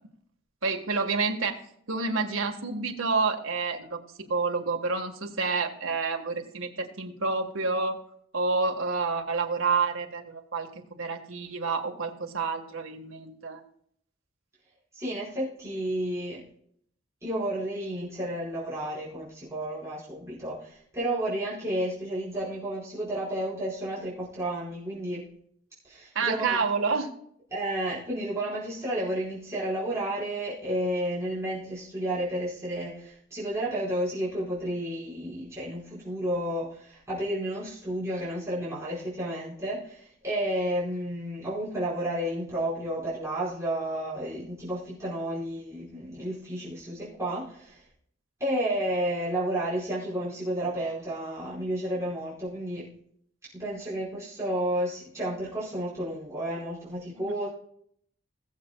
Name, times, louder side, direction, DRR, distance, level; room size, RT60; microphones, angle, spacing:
voice 1, 0.6-1.6 1.9-8.0 8.3-10.7 11.0-13.6 26.1-27.1 57.1-57.3, right 4 dB, 80° right, 4 dB, 1.5 m, -29 dB
voice 2, 14.9-16.4 17.2-25.3 25.8-26.6 27.5-47.8 48.4-52.9 53.5-57.5, right 1 dB, 15° right, -9 dB, 4.9 m, -31 dB
21.0 x 7.7 x 2.3 m, 0.67 s
head